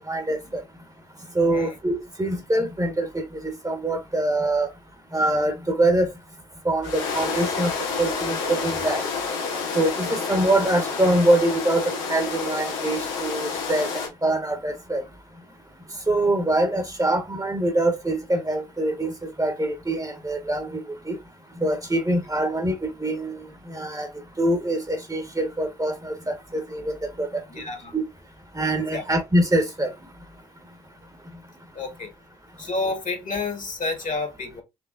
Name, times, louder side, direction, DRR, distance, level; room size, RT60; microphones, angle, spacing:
voice 1, 0.1-0.6 1.3-4.7 5.1-6.1 6.6-7.7 8.0-9.1 9.7-13.9 14.2-15.0 16.1-20.8 21.1-21.2 21.6-24.1 24.4-27.3 27.9-28.0 28.5-29.9, right 1 dB, 20° right, 1.2 m, -24 dB
sound 1, 6.8-14.1, left 5 dB, 80° left, 1.1 m, -29 dB
voice 2, 27.5-27.9 28.9-29.0 31.7-32.1 32.6-34.6, left 3 dB, 40° left, 1.6 m, -30 dB
4.6 x 3.0 x 2.4 m
hypercardioid pair, 45°, 20 cm